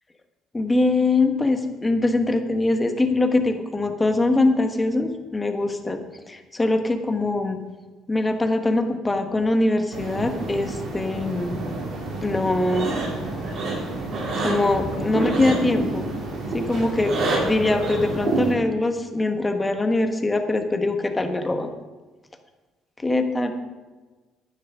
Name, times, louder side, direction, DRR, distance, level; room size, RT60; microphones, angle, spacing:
voice 1, 0.5-6.0 6.3-7.6 8.1-11.6 12.2-12.9 14.4-16.1 16.5-21.7 23.0-23.5, left 2 dB, 15° left, 7 dB, 1.3 m, -23 dB
sound 1, 9.9-18.5, right 2 dB, 55° right, 3.8 m, -28 dB
10.5 x 9.8 x 6.1 m, 1.3 s
cardioid pair, 95°, 0 cm